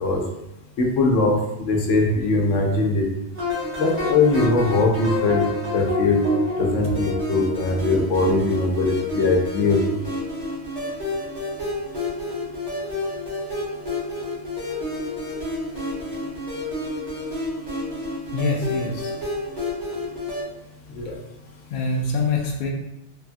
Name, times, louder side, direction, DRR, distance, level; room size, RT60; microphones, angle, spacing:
voice 1, 0.8-1.4 1.7-3.1 3.8-5.4 5.7-6.2 6.6-10.0 21.0-21.1, left 3 dB, 80° left, 0 dB, 1.0 m, -21 dB
sound 1, 3.3-20.4, left 2 dB, 35° right, 1.1 m, -29 dB
voice 2, 18.3-19.1 21.7-22.7, left 3 dB, 60° left, 0 dB, 0.7 m, -24 dB
3.3 x 2.2 x 2.5 m, 0.88 s
omnidirectional pair, 1.3 m